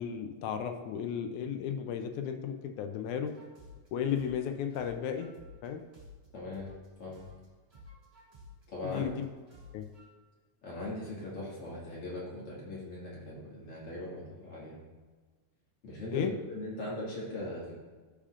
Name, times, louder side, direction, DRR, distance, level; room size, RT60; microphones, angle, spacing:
voice 1, 0.0-3.3 3.9-5.3 5.6-5.8 8.8-9.3 9.7-9.9 16.1-16.3, left 8 dB, 80° left, 6 dB, 2.0 m, -34 dB
sound 1, 3.3-6.9 7.1-10.1, left 2 dB, 25° right, 1.8 m, -53 dB
voice 2, 6.3-6.7 7.0-7.3 8.7-9.2 10.6-14.8 15.8-17.7, left 1 dB, 50° left, -6 dB, 2.8 m, -40 dB
14.0 x 5.0 x 2.5 m, 1.4 s
omnidirectional pair, 3.6 m